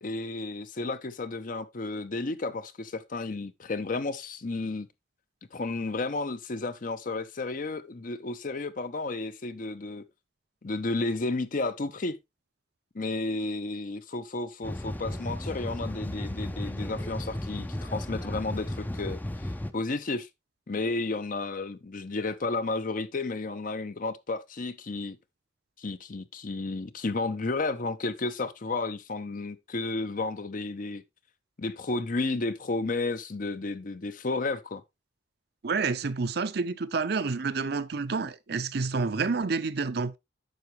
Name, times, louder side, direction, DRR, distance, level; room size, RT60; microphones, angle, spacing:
voice 1, 0.0-4.9 5.5-10.0 10.6-12.2 12.9-19.2 19.7-20.3 20.7-25.2 25.8-31.0 31.6-34.8, left 3 dB, 45° left, 0.7 m, -32 dB
sound 1, 14.6-19.7, left 1 dB, 10° left, 0.5 m, -34 dB
voice 2, 35.6-40.2, right 4 dB, 60° right, 0.6 m, -29 dB
9.3 x 6.0 x 3.1 m
head